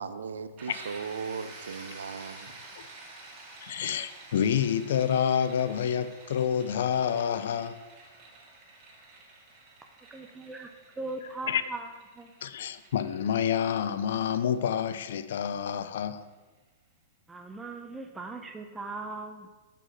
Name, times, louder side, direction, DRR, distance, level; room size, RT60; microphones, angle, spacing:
voice 1, 0.0-2.5, right 5 dB, 90° right, 0.5 m, -37 dB
sound 1, 0.6-16.2, right 2 dB, 35° right, 2.0 m, -50 dB
voice 2, 3.6-7.8 11.5-11.6 12.4-16.2, left 8 dB, 70° left, 0.5 m, -28 dB
voice 3, 10.1-11.9 12.2-12.3 17.3-19.5, right 3 dB, 10° right, 0.6 m, -39 dB
5.6 x 5.4 x 6.4 m
hypercardioid pair, 130°, 0 cm